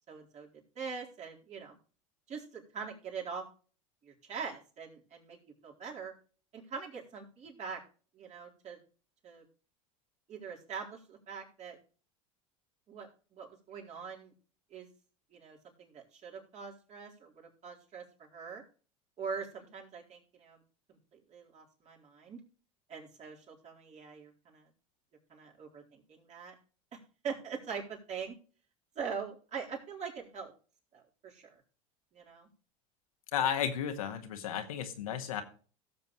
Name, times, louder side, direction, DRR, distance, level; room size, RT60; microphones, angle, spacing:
voice 1, 0.1-1.7 2.3-3.5 4.0-5.4 5.6-6.1 6.5-7.8 8.1-8.8 9.2-9.4 10.3-11.8 12.9-14.3 14.7-14.9 15.3-18.6 19.2-20.6 20.9-22.4 22.9-24.7 25.3-26.5 26.9-27.0 27.2-28.4 29.0-30.5 30.9-31.6 32.1-32.5, right 6 dB, 40° right, -1 dB, 4.2 m, -43 dB
voice 2, 33.3-35.4, left 8 dB, 85° left, 5 dB, 1.7 m, -33 dB
17.5 x 7.1 x 3.1 m, 0.39 s
hypercardioid pair, 90°, 18 cm